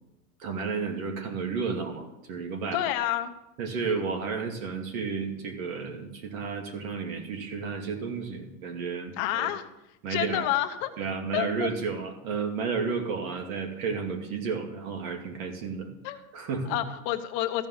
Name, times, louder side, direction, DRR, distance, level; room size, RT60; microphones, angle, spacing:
voice 1, 0.4-2.8 3.6-9.5 10.0-10.5 11.0-15.9 16.3-16.8, right 5 dB, 65° right, 4 dB, 2.6 m, -32 dB
voice 2, 2.7-3.3 3.8-3.9 9.2-9.6 10.1-10.9 11.3-11.7 16.0-16.2 16.7-17.7, left 13 dB, 35° left, 6 dB, 0.9 m, -29 dB
14.0 x 5.4 x 9.4 m, 0.88 s
supercardioid pair, 170°, 44 cm